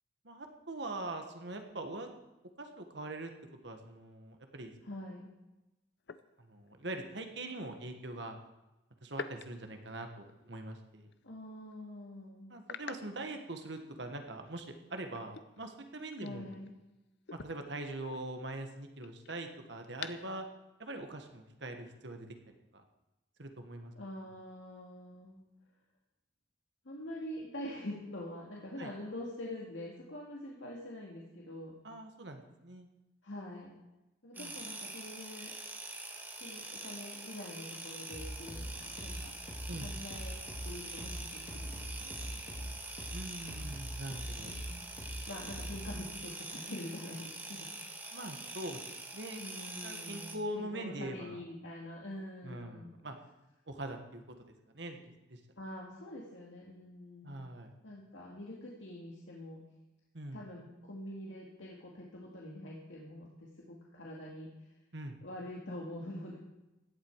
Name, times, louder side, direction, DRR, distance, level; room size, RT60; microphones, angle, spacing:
voice 1, 0.2-2.1 2.6-3.3 3.6-4.7 6.4-8.4 9.0-11.1 12.5-16.5 17.3-20.4 20.8-22.8 23.4-23.9 28.8-28.9 31.8-32.9 34.3-34.6 39.7-39.9 43.1-44.5 48.1-48.8 49.1-49.4 49.8-51.4 52.4-53.2 53.7-54.2 54.7-55.4 57.2-57.7 60.1-60.4 64.9-65.1, right 1 dB, 60° right, 5 dB, 1.6 m, -43 dB
sound 1, 4.6-4.8 6.0-6.9 9.1-10.7 11.1-11.3 11.7-11.8 12.6-14.1 14.4-16.9 17.2-20.4, left 6 dB, 60° left, 0.6 m, -49 dB
voice 2, 4.8-5.3 11.2-12.5 16.2-16.7 24.0-25.4 26.8-31.8 33.2-33.8 34.2-35.5 36.4-39.3 39.7-42.7 44.4-44.8 45.3-47.7 48.4-48.5 49.4-53.0 55.6-57.4 57.8-59.6 60.3-64.7 65.2-66.4, left 1 dB, 75° left, -3 dB, 2.2 m, -45 dB
sound 2, 34.3-50.4, right 2 dB, 10° right, 1.5 m, -45 dB
sound 3, 38.1-46.0, equal, 35° left, 3.1 m, -42 dB
16.5 x 11.0 x 4.8 m, 0.99 s
head